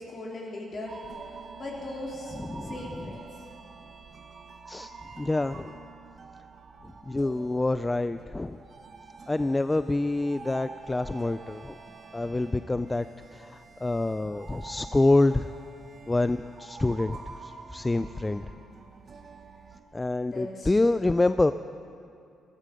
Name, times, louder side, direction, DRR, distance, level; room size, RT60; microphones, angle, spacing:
voice 1, 0.1-1.0 1.5-2.4 2.6-3.4 18.2-18.7 20.3-20.8, left 2 dB, 45° left, -2 dB, 3.5 m, -39 dB
sound 1, 0.9-19.8, right 4 dB, 45° right, 1.1 m, -47 dB
voice 2, 2.4-2.7 4.7-5.8 6.8-8.6 9.3-11.8 12.1-13.1 13.3-15.5 16.1-18.4 19.9-21.5, left 2 dB, 15° left, 12 dB, 0.3 m, -27 dB
16.0 x 13.5 x 5.2 m, 2.6 s
cardioid pair, 90°, 0 cm